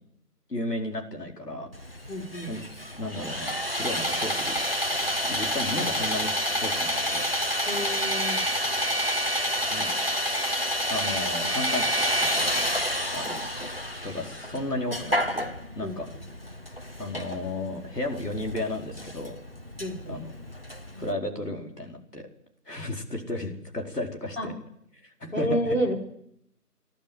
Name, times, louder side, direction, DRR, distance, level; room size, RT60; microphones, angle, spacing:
voice 1, 0.5-1.7 2.1-2.2 2.5-2.6 3.0-4.5 5.2-7.3 9.7-9.9 10.9-12.3 12.5-12.7 13.1-13.4 14.0-16.1 17.0-19.4 20.0-20.3 21.0-22.3 22.7-24.5 25.0-25.8, left 1 dB, 80° left, 1 dB, 4.7 m, -34 dB
Sawing, 1.7-21.1, equal, 40° right, 0.9 m, -29 dB
voice 2, 2.1-2.5 7.7-8.4 15.8-16.0 19.8-20.2 24.4-24.5 25.3-26.0, equal, 55° left, -1 dB, 4.9 m, -29 dB
28.0 x 12.0 x 7.9 m, 0.75 s
figure-of-eight pair, 180°, 47 cm